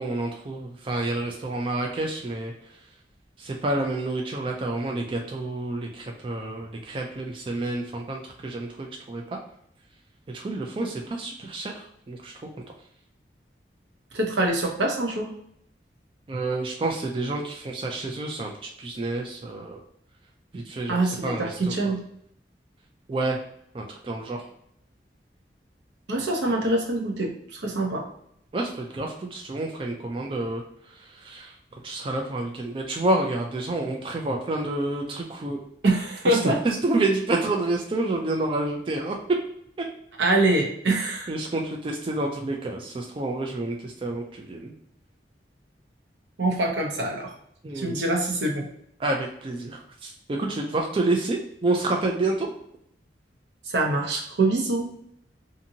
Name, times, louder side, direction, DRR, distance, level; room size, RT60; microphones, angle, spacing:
voice 1, 0.0-2.5 3.4-9.4 10.3-12.3 16.3-19.8 20.5-21.0 21.2-21.7 23.1-23.4 23.7-24.4 28.5-30.6 30.9-31.5 31.8-35.6 36.3-39.2 41.3-44.7 47.6-47.9 49.0-52.5, right 2 dB, 30° right, 1 dB, 0.3 m, -29 dB
voice 2, 14.1-15.3 20.9-22.0 26.1-28.1 35.8-36.6 40.2-41.3 46.4-47.3 47.7-48.7 53.7-54.9, right 2 dB, 80° right, 1 dB, 0.7 m, -24 dB
2.7 x 2.6 x 2.7 m, 0.71 s
head